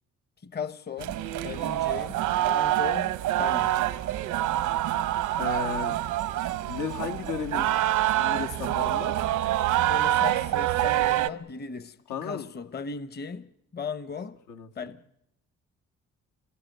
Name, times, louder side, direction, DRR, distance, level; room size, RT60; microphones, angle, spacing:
voice 1, 0.4-1.2 1.4-3.7 9.8-12.0 12.2-13.5 13.7-14.4 14.7-15.0, left 6 dB, 35° left, 1.0 m, -37 dB
sound 1, 1.0-11.3, right 14 dB, 90° right, 1.0 m, -26 dB
voice 2, 5.4-6.0 6.7-7.7 8.2-9.1 12.1-12.5 14.5-14.7, left 8 dB, 80° left, 1.8 m, -34 dB
25.5 x 19.5 x 9.2 m
cardioid pair, 90°, 30 cm